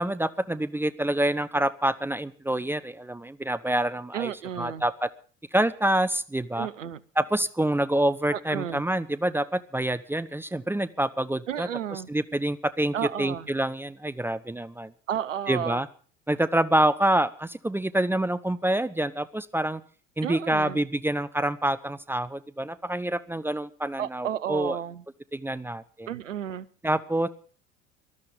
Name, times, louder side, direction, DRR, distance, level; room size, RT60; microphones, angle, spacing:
voice 1, 0.0-4.3 4.6-5.1 5.5-6.7 7.2-14.9 15.5-15.9 16.3-19.8 20.2-24.8 25.3-26.1 26.8-27.3, right 1 dB, 5° right, 13 dB, 0.6 m, -27 dB
voice 2, 4.1-4.8 6.6-7.0 8.3-8.8 11.5-12.1 12.9-13.5 15.1-15.8 20.2-20.8 24.0-25.0 26.1-26.7, right 10 dB, 75° right, 16 dB, 0.8 m, -32 dB
18.5 x 12.5 x 5.3 m, 0.42 s
figure-of-eight pair, 70°, 38 cm